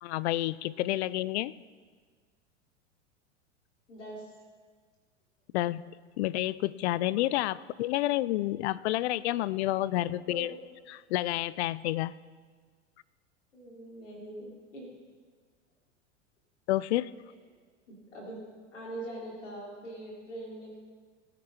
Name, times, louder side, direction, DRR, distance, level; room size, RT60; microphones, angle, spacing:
voice 1, 0.0-1.5 5.5-5.8 6.2-10.5 10.9-12.2 16.7-17.1, left 15 dB, 65° left, 20 dB, 0.5 m, -29 dB
voice 2, 3.9-4.2 10.0-10.5 13.5-14.9 17.9-18.4 18.7-20.8, right 1 dB, 85° left, -4 dB, 5.0 m, -42 dB
19.0 x 10.0 x 4.3 m, 1.5 s
hypercardioid pair, 100°, 36 cm